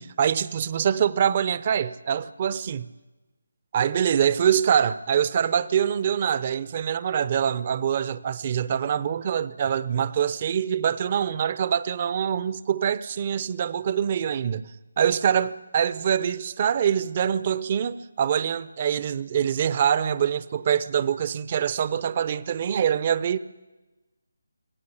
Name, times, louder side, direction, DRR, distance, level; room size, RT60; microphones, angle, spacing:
voice 1, 0.0-2.9 3.7-14.7 15.0-23.4, right 8 dB, 30° right, 0.8 m, -24 dB
26.0 x 17.5 x 8.6 m
figure-of-eight pair, 155°, 0 cm